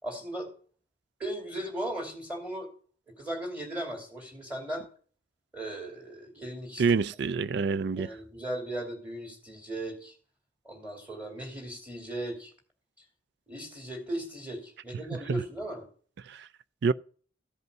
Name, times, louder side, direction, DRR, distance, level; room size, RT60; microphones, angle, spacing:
voice 1, 0.0-0.5 1.2-2.7 3.1-4.9 5.5-6.8 8.0-10.2 10.6-12.5 13.5-15.9, right 1 dB, 5° right, 2.7 m, -37 dB
voice 2, 6.8-8.1 15.3-15.4 16.3-16.4 16.8-16.9, right 5 dB, 60° right, 0.4 m, -26 dB
14.0 x 5.4 x 5.3 m
head